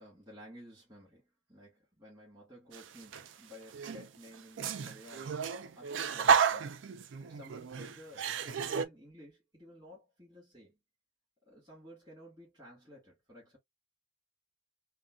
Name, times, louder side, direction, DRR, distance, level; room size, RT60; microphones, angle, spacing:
voice 1, 0.0-5.5 5.8-6.8 7.2-10.8 11.5-13.6, equal, 20° right, 1.8 m, -54 dB
sound 1, 2.7-3.3 3.7-8.9, right 7 dB, 85° right, 0.4 m, -32 dB
3.8 x 2.2 x 2.3 m
head